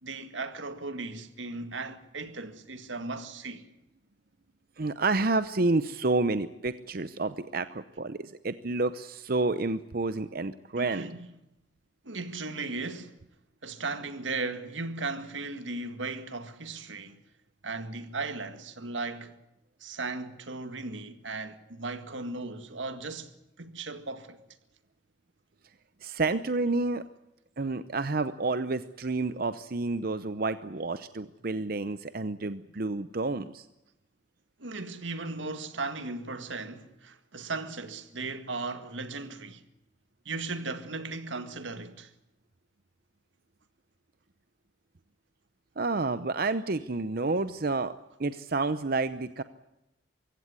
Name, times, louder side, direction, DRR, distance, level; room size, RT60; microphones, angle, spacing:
voice 1, 0.0-3.7 10.8-11.3 12.0-13.1 13.6-17.2 17.6-19.3 19.8-23.3 23.6-24.4 34.6-39.6 40.3-42.1, right 3 dB, 85° right, 2.0 m, -37 dB
voice 2, 4.8-11.1 26.0-27.0 27.6-33.7 45.8-47.9 48.2-49.4, right 3 dB, 50° right, 0.7 m, -29 dB
24.0 x 16.0 x 9.6 m
head